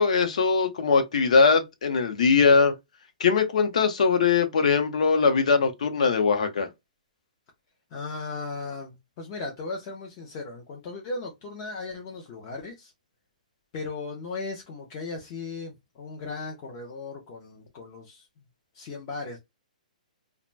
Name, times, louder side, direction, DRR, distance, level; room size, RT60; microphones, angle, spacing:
voice 1, 0.0-2.7 3.2-6.7, left 5 dB, 55° left, 0.7 m, -21 dB
voice 2, 7.9-12.9 13.7-18.3 18.7-19.4, left 3 dB, 20° left, 0.4 m, -37 dB
2.5 x 2.1 x 3.1 m
hypercardioid pair, 180°, 4 cm